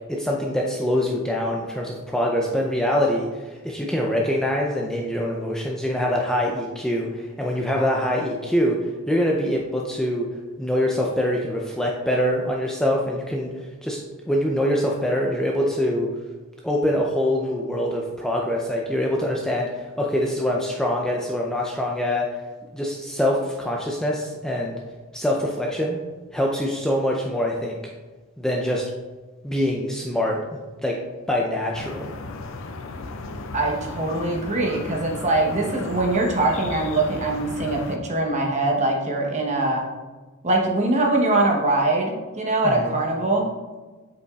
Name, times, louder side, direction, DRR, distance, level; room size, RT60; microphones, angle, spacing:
voice 1, 0.1-8.8 9.1-10.3 10.6-13.5 13.8-14.0 14.3-16.1 16.6-22.3 22.7-24.8 25.1-26.0 26.3-27.8 28.4-28.8 29.4-30.4 30.8-31.0 31.3-32.1 42.6-43.0, left 1 dB, 5° left, -2 dB, 0.4 m, -24 dB
sound 1, 31.7-38.0, left 3 dB, 60° left, 0.5 m, -35 dB
voice 2, 33.5-39.8 40.4-43.5, right 2 dB, 30° right, 0 dB, 1.0 m, -22 dB
8.0 x 5.1 x 2.4 m, 1.3 s
head